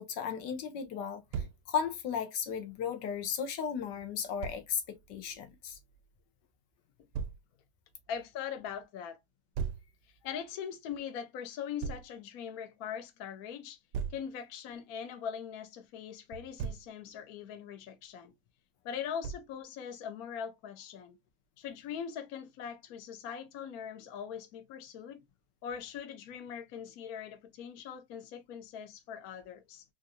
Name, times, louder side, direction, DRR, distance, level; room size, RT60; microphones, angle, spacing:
voice 1, 0.0-5.8, left 7 dB, 80° left, 1.4 m, -35 dB
Thump thud, 1.3-1.6 4.4-4.6 7.1-7.4 9.6-9.9 11.8-12.1 13.9-14.3 16.3-16.9 19.2-19.6, right 6 dB, 80° right, 1.2 m, -37 dB
voice 2, 8.1-9.2 10.2-13.8 14.1-18.3 18.8-21.2 21.6-25.2 25.6-29.8, left 8 dB, 65° left, 1.1 m, -41 dB
3.8 x 2.6 x 2.6 m
omnidirectional pair, 1.8 m